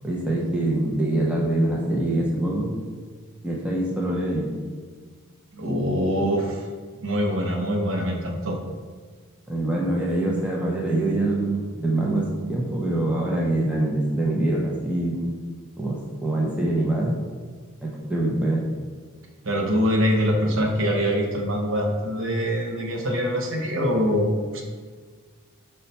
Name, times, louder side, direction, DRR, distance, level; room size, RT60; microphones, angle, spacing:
voice 1, 0.0-2.7 3.4-4.5 9.5-15.3 15.8-17.1 17.8-18.6, right 1 dB, 5° right, -4 dB, 0.5 m, -24 dB
voice 2, 5.5-6.6 7.0-8.6 19.4-24.6, equal, 60° right, 2 dB, 0.7 m, -24 dB
5.3 x 2.2 x 4.0 m, 1.5 s
head